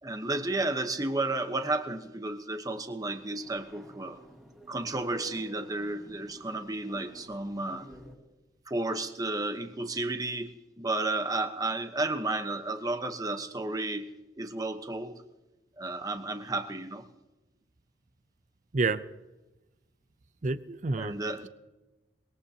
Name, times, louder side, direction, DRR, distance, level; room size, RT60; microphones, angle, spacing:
voice 1, 0.0-4.2 4.7-7.9 8.7-10.5 10.8-14.1 14.4-15.2 15.8-17.0 21.0-21.5, right 2 dB, 20° right, 7 dB, 1.1 m, -32 dB
sound 1, 3.0-8.2, right 1 dB, 5° right, 2.6 m, -50 dB
voice 2, 20.4-21.2, right 3 dB, 45° right, 13 dB, 0.6 m, -28 dB
22.5 x 21.0 x 2.9 m, 1.0 s
head